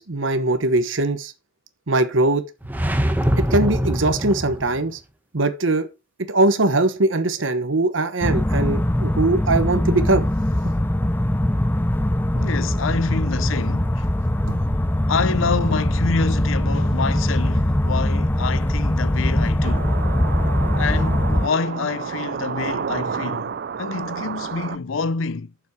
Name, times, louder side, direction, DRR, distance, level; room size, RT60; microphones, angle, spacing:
voice 1, 0.0-1.3 1.9-2.4 3.4-5.0 5.3-5.9 6.3-10.3 14.5-14.6, right 2 dB, 75° right, 1.1 m, -21 dB
sound 1, 2.6-4.9, equal, 10° right, 1.1 m, -23 dB
sound 2, 8.2-21.5, left 1 dB, 10° left, 0.5 m, -21 dB
voice 2, 12.3-14.1 15.1-20.0 20.8-25.5, left 4 dB, 85° left, 0.6 m, -27 dB
sound 3, 19.6-24.8, right 6 dB, 55° right, 0.4 m, -30 dB
10.0 x 7.2 x 4.7 m
head